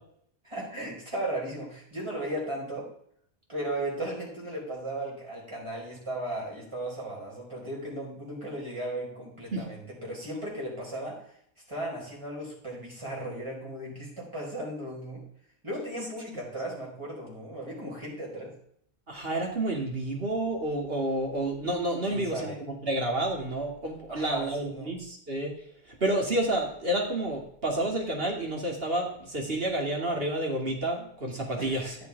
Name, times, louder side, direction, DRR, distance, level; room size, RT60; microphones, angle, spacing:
voice 1, 0.4-2.9 3.5-11.2 11.7-15.2 15.6-18.5 22.1-22.6 24.1-24.9 31.6-31.9, right 1 dB, 25° right, -4 dB, 4.7 m, -36 dB
voice 2, 19.1-25.5 26.0-32.0, right 1 dB, 50° right, 0 dB, 2.7 m, -30 dB
15.0 x 6.9 x 3.6 m, 0.66 s
omnidirectional pair, 1.2 m